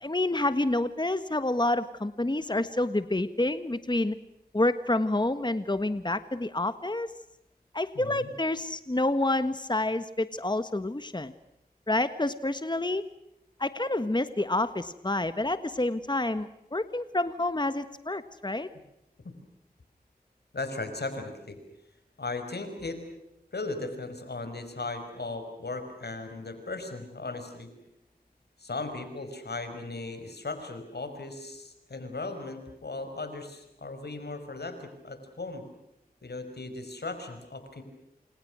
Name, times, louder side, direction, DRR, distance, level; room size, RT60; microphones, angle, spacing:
voice 1, 0.0-4.2 4.5-7.1 7.7-11.3 11.9-13.0 13.6-18.7, left 2 dB, 25° left, 12 dB, 1.5 m, -28 dB
voice 2, 7.9-8.3 19.2-19.3 20.5-21.6 22.2-23.0 23.5-27.7 28.6-35.6 36.2-37.8, left 3 dB, 85° left, 8 dB, 5.5 m, -37 dB
29.0 x 27.5 x 6.2 m, 0.87 s
wide cardioid pair, 40°, 17 cm